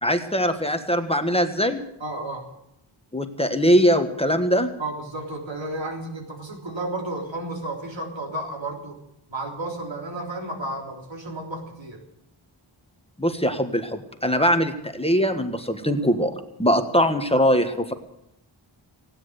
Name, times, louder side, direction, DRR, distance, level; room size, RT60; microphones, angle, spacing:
voice 1, 0.0-1.8 3.1-4.7 13.2-16.3 16.6-17.9, equal, 10° left, 6 dB, 1.5 m, -21 dB
voice 2, 2.0-2.5 4.8-9.0 9.3-12.0, right 2 dB, 70° right, 0 dB, 3.8 m, -32 dB
16.5 x 10.0 x 8.2 m, 0.82 s
wide cardioid pair, 55°, 47 cm